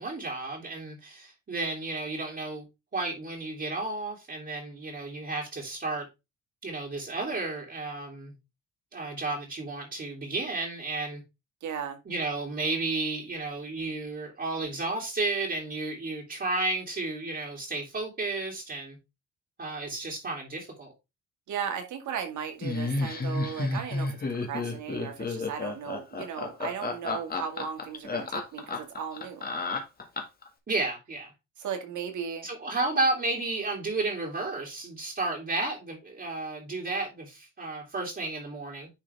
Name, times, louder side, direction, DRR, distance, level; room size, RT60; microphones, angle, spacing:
voice 1, 0.0-2.6 2.9-6.1 6.6-8.3 8.9-11.2 12.1-19.0 19.6-20.9 30.7-31.3 32.4-38.9, right 2 dB, 35° right, 2.9 m, -32 dB
voice 2, 11.6-12.0 21.5-29.5 31.6-32.5, right 7 dB, 75° right, 2.1 m, -36 dB
Laughter, 22.6-30.5, left 3 dB, 30° left, 1.9 m, -31 dB
10.0 x 3.9 x 3.5 m
cardioid pair, 90°, 30 cm